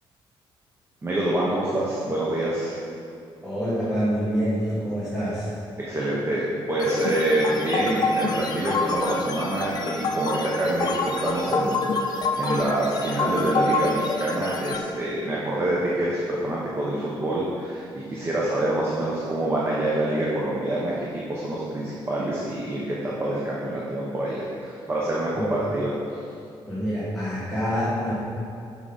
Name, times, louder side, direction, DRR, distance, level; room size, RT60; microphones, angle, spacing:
voice 1, 1.0-2.7 5.8-26.3, right 1 dB, 25° right, -5 dB, 0.9 m, -26 dB
voice 2, 3.4-5.5 25.3-25.5 26.7-28.1, equal, ahead, -11 dB, 1.7 m, -26 dB
sound 1, 6.8-14.8, left 3 dB, 45° left, 0.6 m, -27 dB
7.3 x 6.4 x 4.0 m, 2.6 s
cardioid pair, 140°, 9 cm